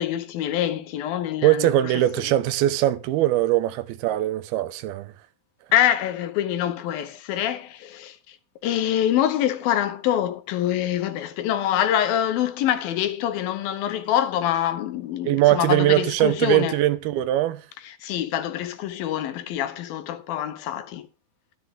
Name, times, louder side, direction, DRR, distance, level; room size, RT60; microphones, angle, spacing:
voice 1, 0.0-1.7 5.7-8.2 8.6-16.7 18.0-21.0, left 11 dB, 75° left, 2.7 m, -25 dB
voice 2, 1.4-5.1 15.3-17.7, right 14 dB, 85° right, 2.7 m, -21 dB
12.5 x 11.0 x 3.7 m
omnidirectional pair, 4.4 m